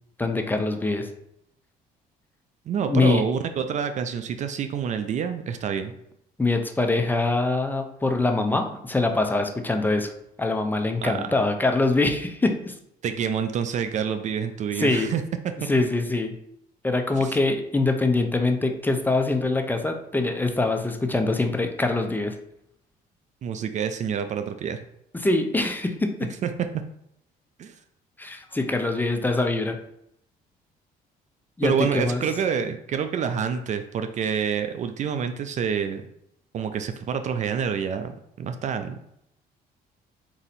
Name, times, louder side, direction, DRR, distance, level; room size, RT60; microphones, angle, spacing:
voice 1, 0.2-1.1 2.9-3.2 6.4-10.1 10.4-12.7 14.7-15.1 15.7-16.3 16.8-22.3 25.1-26.3 28.2-29.8 31.6-32.2, left 2 dB, 10° left, 5 dB, 0.5 m, -24 dB
voice 2, 2.7-5.9 11.0-11.3 13.0-15.2 17.2-17.4 23.4-24.8 26.4-26.5 27.6-27.7 31.6-36.0 36.5-39.0, right 7 dB, 45° right, 9 dB, 0.4 m, -27 dB
4.2 x 2.7 x 4.0 m, 0.76 s
cardioid pair, 110°, 17 cm